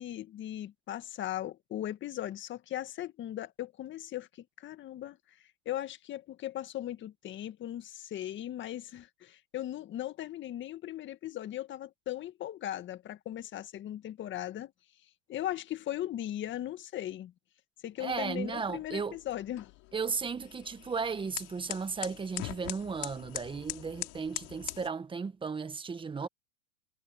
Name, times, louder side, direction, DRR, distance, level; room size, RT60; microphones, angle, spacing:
voice 1, 0.0-5.2 5.7-14.7 15.3-17.3 17.8-19.7, left 12 dB, 25° left, 1.9 m, -38 dB
voice 2, 18.0-19.2 19.9-26.3, right 5 dB, 10° right, 1.5 m, -35 dB
sound 1, 18.1-24.9, left 25 dB, 40° left, 4.2 m, -43 dB
hypercardioid pair, 130°, 49 cm